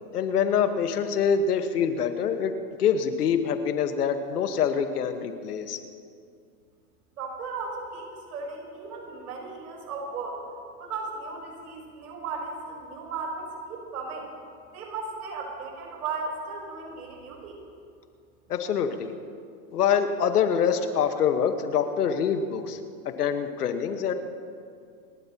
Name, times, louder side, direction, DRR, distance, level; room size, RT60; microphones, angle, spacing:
voice 1, 0.1-2.5 2.8-5.8 18.5-19.1 19.7-22.8 23.2-24.1, left 7 dB, 90° left, 7 dB, 1.6 m, -25 dB
voice 2, 7.2-10.4 10.8-14.3 14.7-17.6, right 4 dB, 75° right, -1 dB, 4.6 m, -36 dB
29.0 x 12.0 x 3.0 m, 2.3 s
supercardioid pair, 155°, 45 cm